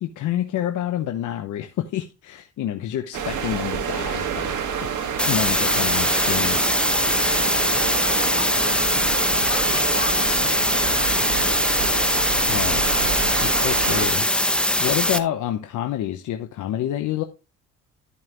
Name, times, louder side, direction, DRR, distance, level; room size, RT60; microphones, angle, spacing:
voice 1, 0.0-4.6 5.3-7.2 12.5-17.2, left 11 dB, 80° left, 1.0 m, -28 dB
sound 1, 3.1-14.1, right 7 dB, 75° right, 1.7 m, -28 dB
sound 2, 5.2-15.2, left 1 dB, 5° left, 0.8 m, -21 dB
voice 2, 6.3-6.7 7.1-11.7, left 6 dB, 45° left, 3.1 m, -38 dB
13.0 x 5.6 x 3.0 m
cardioid pair, 90°, 30 cm